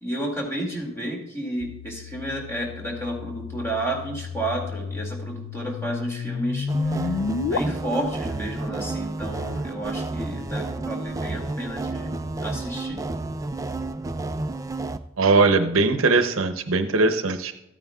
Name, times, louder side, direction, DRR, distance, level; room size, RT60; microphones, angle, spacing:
voice 1, 0.0-7.1 7.4-12.1 12.4-13.0, right 1 dB, 15° left, -1 dB, 2.2 m, -31 dB
sound 1, 1.6-7.6, left 5 dB, 85° left, 0.4 m, -31 dB
sound 2, 6.7-15.0, right 2 dB, 15° right, 0.3 m, -31 dB
voice 2, 15.2-17.5, right 3 dB, 90° right, 8 dB, 0.7 m, -20 dB
13.5 x 9.1 x 2.3 m, 0.88 s
head